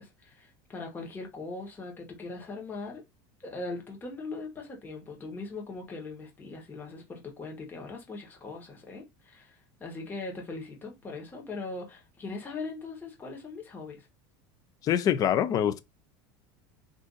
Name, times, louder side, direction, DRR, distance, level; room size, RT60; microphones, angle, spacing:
voice 1, 0.0-3.0 3.4-14.1, left 3 dB, 15° left, 1.0 m, -40 dB
voice 2, 14.8-15.8, left 10 dB, 30° left, 0.4 m, -25 dB
2.5 x 2.5 x 3.8 m
supercardioid pair, 140°, 12 cm